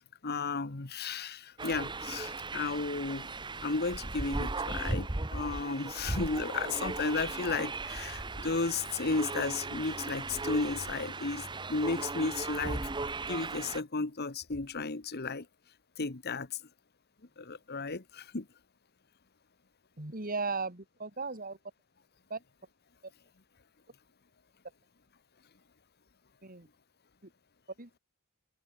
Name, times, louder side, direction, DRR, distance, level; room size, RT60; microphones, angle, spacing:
voice 1, 0.2-3.3 3.6-12.9 13.3-15.5 16.0-16.6 17.4-18.5, left 3 dB, 45° left, 1.3 m, -34 dB
sound 1, 1.6-13.8, right 3 dB, 20° right, 1.1 m, -37 dB
voice 2, 20.0-21.6 22.3-22.4 26.4-26.7 27.8-27.9, right 4 dB, 40° right, 3.1 m, -36 dB
head